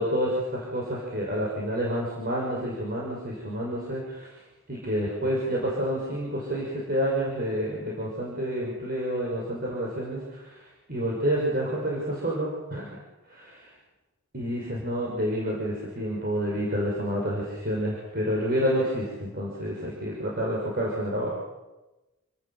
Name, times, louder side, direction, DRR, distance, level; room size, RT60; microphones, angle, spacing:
voice 1, 0.0-4.3 4.7-10.4 10.9-12.9 13.3-13.6 14.3-21.3, equal, 45° right, -3 dB, 6.3 m, -29 dB
29.5 x 18.5 x 7.5 m, 1.1 s
head